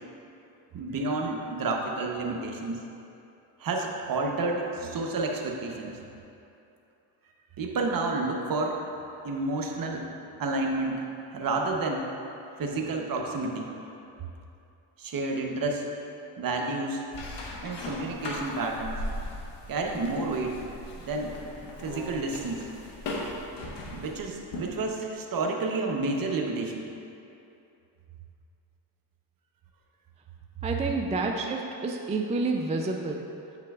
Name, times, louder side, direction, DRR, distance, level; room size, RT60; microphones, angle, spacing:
voice 1, 0.7-2.8 3.6-6.0 7.6-8.8 9.2-10.1 10.4-11.0 11.3-12.1 12.6-13.7 15.0-15.9 16.4-17.0 17.6-19.0 19.7-20.6 21.1-21.4 21.6-22.7 23.9-26.9, right 3 dB, 45° right, 1 dB, 0.9 m, -30 dB
sound 1, 17.1-24.9, left 1 dB, 65° left, 1.1 m, -38 dB
voice 2, 30.6-33.3, right 3 dB, 15° right, 1 dB, 0.3 m, -29 dB
8.5 x 5.8 x 2.4 m, 2.7 s
cardioid pair, 75°, 46 cm